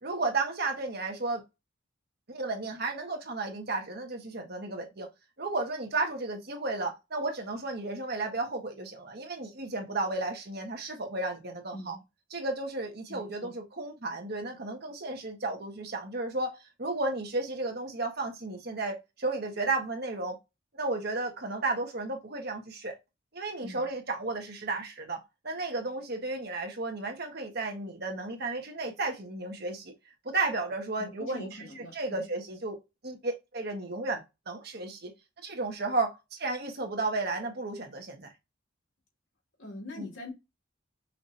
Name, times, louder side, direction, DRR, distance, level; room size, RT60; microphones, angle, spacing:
voice 1, 0.0-1.4 2.3-5.1 5.4-12.0 12.3-20.4 20.7-22.9 23.3-29.9 30.2-31.5 31.9-32.8 33.0-35.1 35.4-38.3 40.0-40.1, right 3 dB, 55° right, 1.4 m, -33 dB
voice 2, 11.7-12.0 13.1-13.5 23.6-23.9 31.0-32.3 39.6-40.3, left 2 dB, 75° left, 2.4 m, -43 dB
5.8 x 3.0 x 2.7 m
head